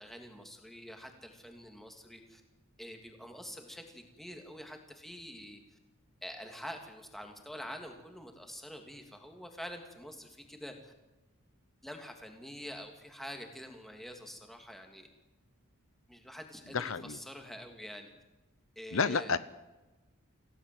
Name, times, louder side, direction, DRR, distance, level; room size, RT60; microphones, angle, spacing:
voice 1, 0.0-2.4 2.8-5.8 6.2-10.9 11.8-15.1 16.1-18.1 18.7-19.3, equal, ahead, 4 dB, 2.9 m, -46 dB
voice 2, 16.7-17.2 18.9-19.4, left 5 dB, 70° left, 14 dB, 0.9 m, -30 dB
27.5 x 17.0 x 8.0 m, 1.1 s
head